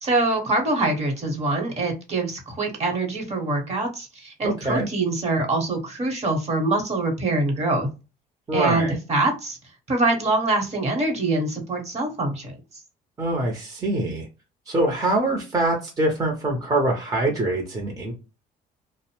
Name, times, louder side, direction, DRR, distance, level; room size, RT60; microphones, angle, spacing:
voice 1, 0.0-7.9 8.5-9.6 9.9-12.5, right 2 dB, 40° right, 3 dB, 1.0 m, -24 dB
voice 2, 4.4-4.9 8.5-9.0 13.2-14.3 14.7-18.1, right 2 dB, 20° right, -1 dB, 0.7 m, -24 dB
2.6 x 2.0 x 2.9 m, 0.30 s
cardioid pair, 110°, 17 cm